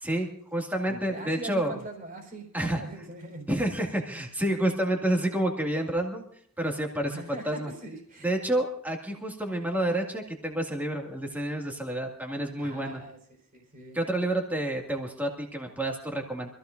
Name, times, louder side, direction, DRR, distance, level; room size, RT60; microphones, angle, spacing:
voice 1, 0.0-1.7 2.5-2.8 3.5-6.3 6.6-7.7 8.2-13.0 13.9-16.5, right 1 dB, 10° right, 1 dB, 2.1 m, -29 dB
voice 2, 0.9-3.5 7.0-8.3 12.6-13.2 13.5-14.0, right 2 dB, 40° right, 2 dB, 4.4 m, -41 dB
26.0 x 15.0 x 2.6 m, 0.63 s
head